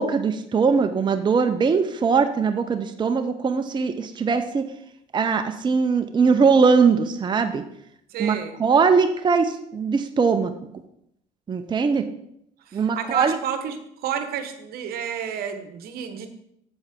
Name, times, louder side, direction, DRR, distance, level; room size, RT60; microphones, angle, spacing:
voice 1, 0.0-4.6 5.1-7.6 8.2-10.5 11.5-12.1 12.7-13.4, right 5 dB, 25° right, 8 dB, 0.6 m, -21 dB
voice 2, 8.1-8.6 12.7-16.3, right 8 dB, 65° right, 8 dB, 1.1 m, -30 dB
7.8 x 7.1 x 3.6 m, 0.75 s
supercardioid pair, 80°, 17 cm